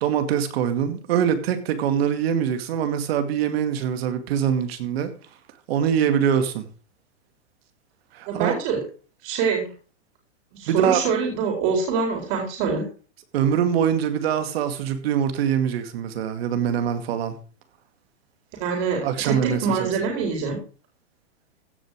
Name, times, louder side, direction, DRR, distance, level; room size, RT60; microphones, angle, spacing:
voice 1, 0.0-5.1 5.7-6.7 8.1-8.5 10.7-11.0 13.3-17.3 19.0-19.9, right 8 dB, 60° right, 2.2 m, -23 dB
voice 2, 8.3-8.8 9.2-9.7 10.5-12.8 18.6-20.6, right 5 dB, 45° right, 4.4 m, -25 dB
16.0 x 5.3 x 5.0 m
hypercardioid pair, 140°, 34 cm